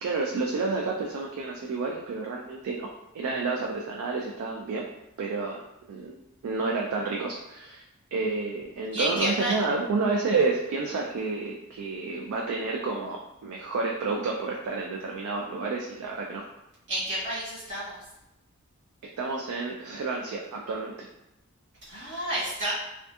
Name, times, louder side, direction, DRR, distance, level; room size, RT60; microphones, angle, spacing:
voice 1, 0.0-2.9 3.1-4.8 5.2-5.6 5.9-7.8 8.1-16.4 19.2-21.1, right 3 dB, 70° right, -1 dB, 0.3 m, -30 dB
voice 2, 8.9-9.5 16.9-18.0 21.8-22.7, right 1 dB, 55° right, -9 dB, 1.4 m, -30 dB
2.6 x 2.4 x 2.3 m, 0.88 s
head